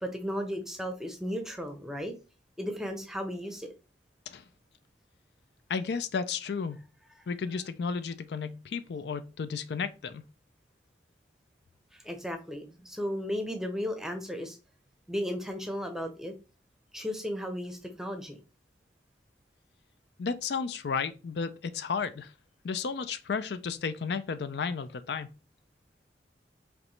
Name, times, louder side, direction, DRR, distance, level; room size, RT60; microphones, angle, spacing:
voice 1, 0.0-2.1 2.6-3.7 11.9-14.6 15.1-16.3 16.9-18.4, equal, 5° right, 0.7 m, -35 dB
voice 2, 5.7-6.8 7.3-10.2 20.2-22.3 22.6-25.3, left 5 dB, 70° left, 0.4 m, -33 dB
5.0 x 3.1 x 3.2 m
head